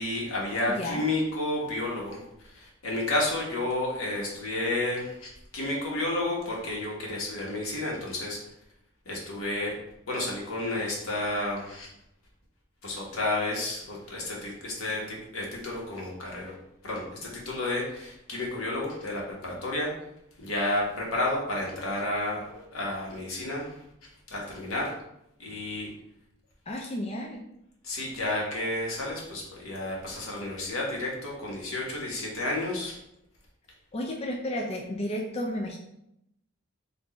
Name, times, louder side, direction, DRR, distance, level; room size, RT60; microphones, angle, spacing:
voice 1, 0.0-8.4 9.0-9.8 10.1-11.9 12.8-16.5 16.8-19.9 20.4-23.8 24.3-24.9 25.4-25.9 27.8-33.0, left 2 dB, 85° left, -3 dB, 1.4 m, -31 dB
voice 2, 0.7-1.1 26.7-27.4 33.9-35.8, left 1 dB, 30° left, 1 dB, 0.4 m, -32 dB
4.4 x 2.7 x 4.1 m, 0.81 s
head